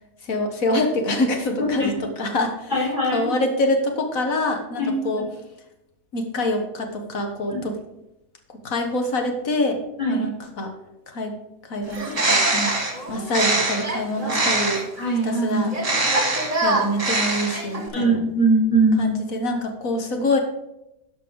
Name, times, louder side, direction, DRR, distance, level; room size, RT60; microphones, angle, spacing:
voice 1, 0.2-2.7 3.1-5.2 6.1-7.8 8.6-9.8 10.1-10.3 10.6-10.7 11.1-11.3 11.7-12.8 13.1-14.8 15.2-15.7 16.5-18.2 19.0-20.4, left 1 dB, 60° left, 5 dB, 1.6 m, -25 dB
voice 2, 2.7-3.3 4.7-5.2 7.5-7.6 10.0-10.3 15.0-15.7 17.9-19.1, right 2 dB, 30° left, -3 dB, 4.0 m, -21 dB
Bird, 11.9-15.0 15.7-17.9, right 2 dB, 25° right, 1.6 m, -23 dB
11.0 x 5.4 x 5.2 m, 0.89 s
omnidirectional pair, 1.7 m